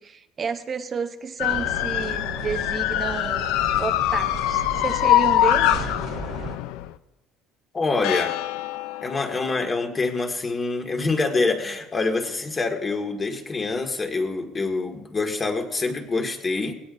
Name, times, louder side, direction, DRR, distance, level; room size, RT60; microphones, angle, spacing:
voice 1, 0.0-3.5 3.8-5.9, right 6 dB, 35° right, 7 dB, 0.7 m, -31 dB
sound 1, 1.4-6.9 8.0-9.6, left 14 dB, 85° left, 0.5 m, -24 dB
sound 2, 1.5-6.6, right 6 dB, 55° right, 1.7 m, -36 dB
voice 2, 7.7-8.4 9.0-16.7, left 3 dB, 25° left, 4 dB, 1.9 m, -26 dB
18.5 x 18.0 x 2.6 m, 1.0 s
cardioid pair, 120°, 0 cm